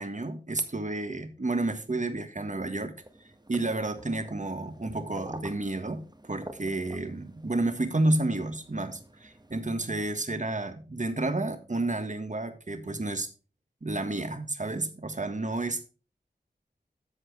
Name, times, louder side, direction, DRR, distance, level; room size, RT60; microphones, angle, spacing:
voice 1, 0.0-2.9 3.5-13.3 13.8-15.9, right 2 dB, 45° right, 1.5 m, -31 dB
sound 1, 2.9-10.1, right 1 dB, 25° right, 1.6 m, -49 dB
13.0 x 4.7 x 4.5 m
wide cardioid pair, 40°, 17 cm